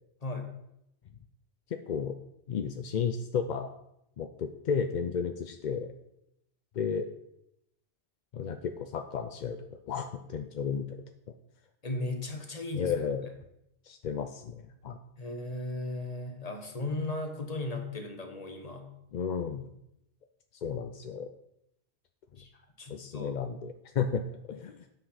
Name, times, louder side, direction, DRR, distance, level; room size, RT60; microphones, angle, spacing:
voice 1, 2.5-3.7 4.2-5.9 6.8-7.1 8.3-9.6 9.9-11.0 12.8-13.3 13.8-15.0 19.1-19.7 20.6-21.3 22.9-24.8, left 6 dB, 55° left, 6 dB, 0.5 m, -33 dB
voice 2, 11.8-12.9 15.2-18.9 22.4-22.5 22.8-23.4, left 2 dB, 35° left, 4 dB, 1.3 m, -36 dB
8.6 x 5.3 x 5.7 m, 0.81 s
omnidirectional pair, 1.2 m